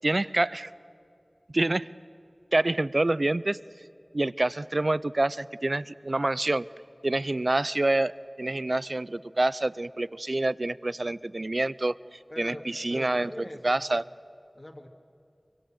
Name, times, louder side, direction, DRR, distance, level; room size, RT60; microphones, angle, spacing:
voice 1, 0.0-0.7 1.5-1.9 2.5-3.6 4.1-6.7 7.0-13.3 13.6-14.0, right 2 dB, 60° right, 18 dB, 0.5 m, -27 dB
voice 2, 12.3-13.9 14.5-14.9, left 1 dB, 45° left, 1 dB, 2.2 m, -43 dB
24.5 x 23.5 x 7.7 m, 2.7 s
wide cardioid pair, 45°, 0 cm